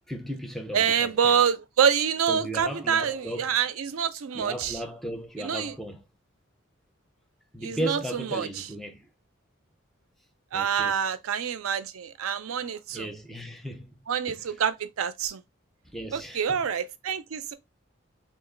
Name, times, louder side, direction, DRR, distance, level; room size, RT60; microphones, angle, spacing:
voice 1, 0.1-1.4 2.3-3.6 4.3-6.0 7.5-9.1 10.5-11.0 12.9-14.0 14.3-14.5 15.8-16.6, right 1 dB, ahead, 0.4 m, -36 dB
voice 2, 0.7-4.8 5.4-5.7 7.6-8.7 10.5-13.1 14.1-15.4 16.1-17.5, right 7 dB, 85° right, 0.5 m, -26 dB
2.9 x 2.4 x 3.7 m
head